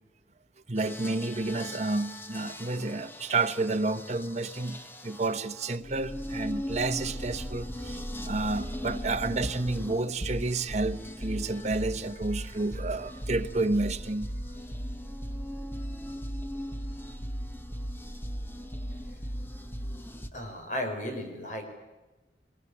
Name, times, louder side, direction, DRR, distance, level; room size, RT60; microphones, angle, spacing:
voice 1, 0.7-4.8 5.0-14.3, right 3 dB, 40° right, 1.2 m, -30 dB
sound 1, 0.8-20.3, equal, 15° left, 1.4 m, -38 dB
voice 2, 20.3-21.6, left 1 dB, 45° left, 5.1 m, -35 dB
23.0 x 21.5 x 9.9 m
head